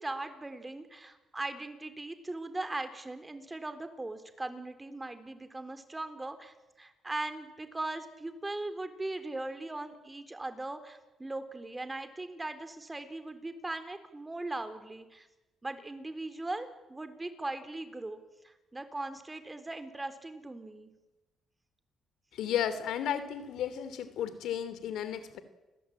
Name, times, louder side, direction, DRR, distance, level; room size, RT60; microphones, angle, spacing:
voice 1, 0.0-15.3 15.6-18.2 18.4-20.9, right 2 dB, 15° right, 9 dB, 3.7 m, -39 dB
voice 2, 22.3-25.4, left 9 dB, 80° left, 12 dB, 3.0 m, -33 dB
29.5 x 21.0 x 8.8 m, 1.1 s
cardioid pair, 90°, 0 cm